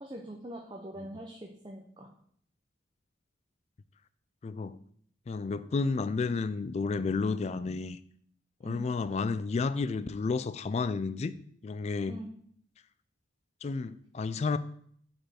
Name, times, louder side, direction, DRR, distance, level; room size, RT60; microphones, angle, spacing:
voice 1, 0.0-2.1 8.6-8.9 12.1-12.3, right 1 dB, 25° right, 0.6 m, -43 dB
voice 2, 4.4-4.8 5.3-8.0 8.6-11.3 11.6-12.2 13.6-14.6, left 4 dB, 35° left, 0.3 m, -31 dB
5.3 x 4.3 x 5.7 m
head